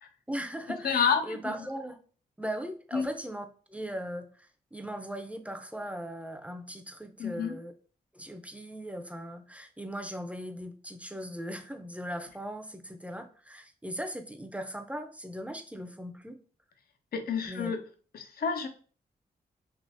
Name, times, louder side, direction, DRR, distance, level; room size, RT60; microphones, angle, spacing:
voice 1, 0.3-2.0 2.4-7.7 8.1-16.4 17.5-17.7, equal, 10° right, 6 dB, 0.5 m, -39 dB
voice 2, 0.8-1.6 2.9-3.1 7.2-7.6 17.1-17.8 18.1-18.7, left 6 dB, 60° left, 7 dB, 0.6 m, -29 dB
3.5 x 2.7 x 2.6 m, 0.41 s
cardioid pair, 55°, 17 cm